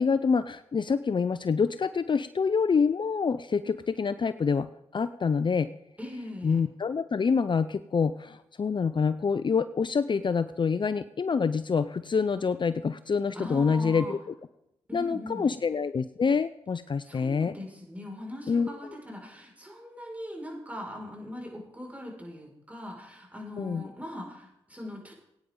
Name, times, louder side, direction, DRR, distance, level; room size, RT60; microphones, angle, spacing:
voice 1, 0.0-4.7 4.9-5.7 6.4-14.2 14.9-17.5 18.5-18.7 23.6-23.9, left 5 dB, 45° left, 13 dB, 0.5 m, -26 dB
voice 2, 6.0-6.6 13.3-14.1 14.9-15.6 17.0-25.1, left 1 dB, 15° right, -1 dB, 5.7 m, -40 dB
18.5 x 9.4 x 3.9 m, 0.83 s
supercardioid pair, 45°, 11 cm